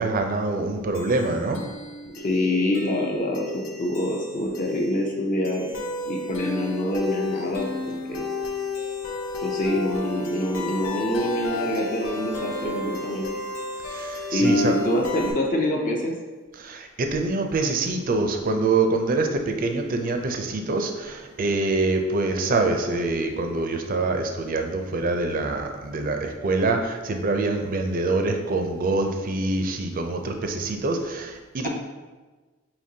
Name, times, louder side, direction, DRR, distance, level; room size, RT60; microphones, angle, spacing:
voice 1, 0.0-1.6 13.9-14.7 16.6-31.7, right 3 dB, 45° right, 5 dB, 0.4 m, -25 dB
sound 1, 0.9-15.3, left 3 dB, 80° left, 0.7 m, -33 dB
voice 2, 2.1-5.7 6.1-8.3 9.4-13.3 14.3-16.1, left 1 dB, 40° left, 0 dB, 0.5 m, -25 dB
5.1 x 2.9 x 2.7 m, 1.3 s
head